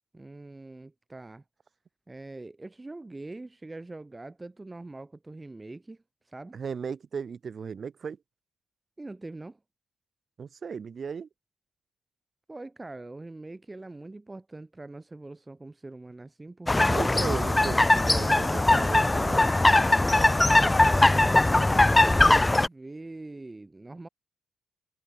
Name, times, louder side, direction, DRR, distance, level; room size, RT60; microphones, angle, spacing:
voice 1, 0.1-1.4 2.1-6.6 9.0-9.6 12.5-17.0 20.6-24.1, right 2 dB, 20° right, 1.5 m, -43 dB
voice 2, 6.5-8.2 10.4-11.3 16.9-19.5, right 6 dB, 50° right, 3.0 m, -36 dB
sound 1, 16.7-22.7, left 2 dB, 15° left, 0.4 m, -21 dB
cardioid pair, 85°, 0 cm